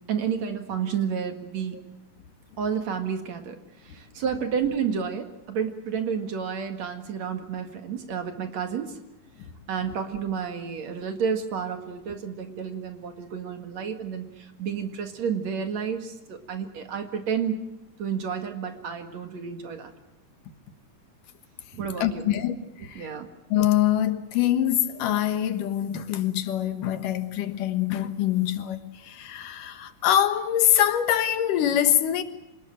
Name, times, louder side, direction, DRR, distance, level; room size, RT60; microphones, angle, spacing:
voice 1, 0.1-1.8 2.6-3.5 3.9-8.9 9.7-17.6 18.0-19.9 21.7-22.3 23.0-23.3, right 7 dB, 60° right, 3.0 m, -30 dB
voice 2, 22.0-23.1 23.5-32.2, left 11 dB, 80° left, 2.9 m, -24 dB
26.0 x 19.5 x 7.7 m
omnidirectional pair, 3.7 m